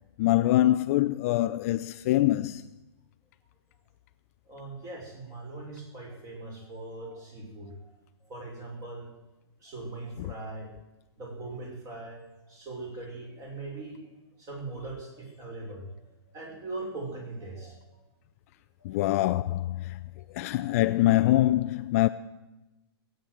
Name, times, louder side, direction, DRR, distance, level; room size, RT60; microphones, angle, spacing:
voice 1, 0.2-2.6 10.2-10.3 18.8-20.0 20.3-22.1, left 15 dB, 35° left, 0.5 m, -24 dB
voice 2, 4.5-7.9 8.2-9.1 9.6-10.7 11.2-12.2 12.4-14.0 14.4-15.8 16.3-18.0 18.8-19.0 20.1-20.3, right 2 dB, 25° right, 5.6 m, -40 dB
20.5 x 8.9 x 7.8 m
hypercardioid pair, 150°, 14 cm